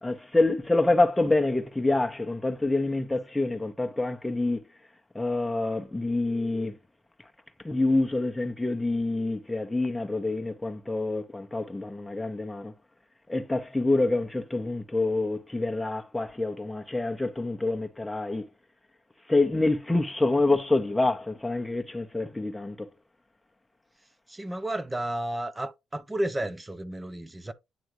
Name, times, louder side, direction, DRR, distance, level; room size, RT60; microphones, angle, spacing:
voice 1, 0.0-4.6 5.1-6.8 7.6-12.7 13.3-18.4 19.3-22.9, left 2 dB, 10° left, 1.0 m, -26 dB
voice 2, 24.3-27.5, right 1 dB, 15° right, 0.6 m, -32 dB
9.3 x 3.5 x 3.0 m
cardioid pair, 90°, 0 cm